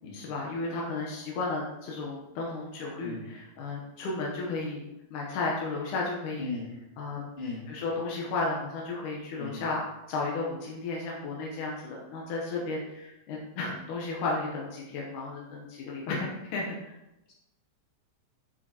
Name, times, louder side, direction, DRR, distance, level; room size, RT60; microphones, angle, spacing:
voice 1, 0.1-4.8 5.1-6.5 7.0-7.3 7.7-9.8 10.1-16.9, left 3 dB, 85° left, -3 dB, 2.6 m, -33 dB
voice 2, 3.0-3.3 6.4-6.7 7.4-7.7 9.4-9.6, left 3 dB, 25° left, -5 dB, 1.8 m, -37 dB
7.8 x 7.2 x 2.9 m, 0.94 s
omnidirectional pair, 3.5 m